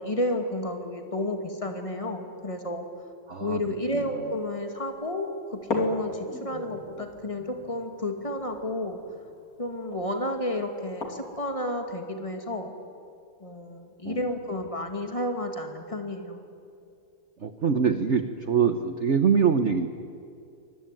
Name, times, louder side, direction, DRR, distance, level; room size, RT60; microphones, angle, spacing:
voice 1, 0.0-2.8 3.4-9.0 9.6-12.7 13.4-16.4, left 1 dB, 15° left, 5 dB, 2.3 m, -31 dB
voice 2, 3.3-3.6 3.9-4.1 14.0-14.3 17.4-19.9, right 6 dB, 50° right, 9 dB, 0.9 m, -24 dB
sound 1, 4.4-4.5 4.9-5.0 5.6-11.5, left 2 dB, 40° left, 3.5 m, -38 dB
25.0 x 20.0 x 9.2 m, 2.5 s
omnidirectional pair, 2.4 m